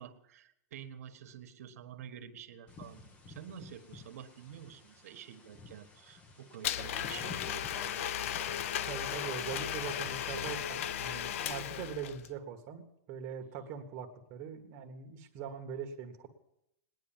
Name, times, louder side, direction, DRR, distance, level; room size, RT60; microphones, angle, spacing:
voice 1, 0.0-8.1, right 9 dB, 65° right, 9 dB, 1.6 m, -49 dB
sound 1, 2.7-10.6, left 4 dB, 15° left, 1.0 m, -53 dB
Domestic sounds home sounds, 6.6-12.3, left 10 dB, 55° left, 0.6 m, -36 dB
voice 2, 8.8-16.3, right 7 dB, 30° right, 5 dB, 1.5 m, -42 dB
19.0 x 10.0 x 7.4 m, 0.81 s
supercardioid pair, 165°, 9 cm